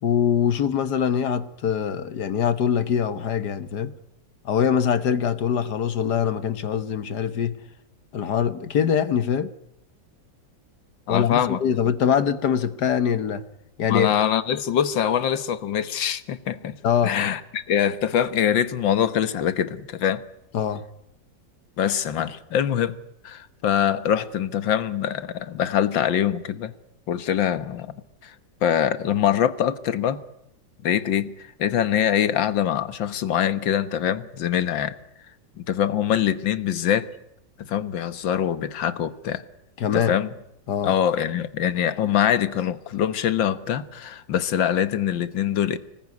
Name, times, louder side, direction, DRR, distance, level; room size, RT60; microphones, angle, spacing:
voice 1, 0.0-3.9 4.4-7.6 8.1-9.5 11.1-13.4 13.8-14.1 16.8-17.2 20.5-20.8 39.8-40.2 40.7-40.9, left 8 dB, 65° left, 1.6 m, -23 dB
voice 2, 11.1-11.6 13.9-16.8 17.0-20.2 21.8-23.0 23.2-26.7 27.1-27.9 28.2-28.4 28.6-30.2 30.8-31.3 31.6-35.0 35.6-37.1 37.6-39.4 39.9-40.3 40.8-45.8, left 9 dB, 80° left, 1.9 m, -23 dB
25.0 x 20.0 x 9.6 m
omnidirectional pair, 2.0 m